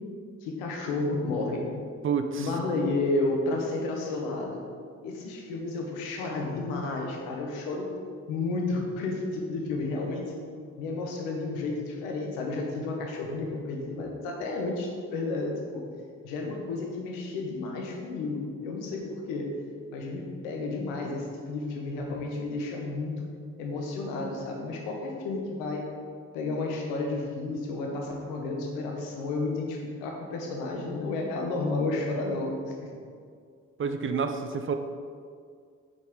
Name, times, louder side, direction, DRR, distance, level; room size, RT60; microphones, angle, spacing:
voice 1, 0.4-1.7 2.4-4.6 5.0-7.9 8.3-10.3 10.8-15.8 16.2-19.5 19.9-23.2 23.6-25.9 26.3-32.9, left 3 dB, 75° left, 1 dB, 1.0 m, -31 dB
voice 2, 2.0-2.5 33.8-34.7, right 5 dB, 35° right, 7 dB, 0.5 m, -28 dB
6.2 x 5.4 x 3.6 m, 2.1 s
hypercardioid pair, 40°, 38 cm